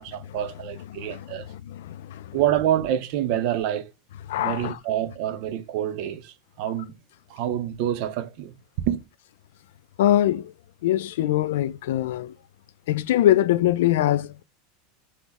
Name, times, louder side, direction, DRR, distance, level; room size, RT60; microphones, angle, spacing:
voice 1, 0.0-1.5 2.3-3.9 4.4-7.0 7.3-8.5 8.9-9.0, right 11 dB, 45° right, 0.6 m, -27 dB
voice 2, 1.7-2.3 4.3-4.8 10.0-10.4 10.8-12.3 12.9-14.4, left 13 dB, 80° left, 0.3 m, -22 dB
6.1 x 2.1 x 3.5 m
supercardioid pair, 180°, 0 cm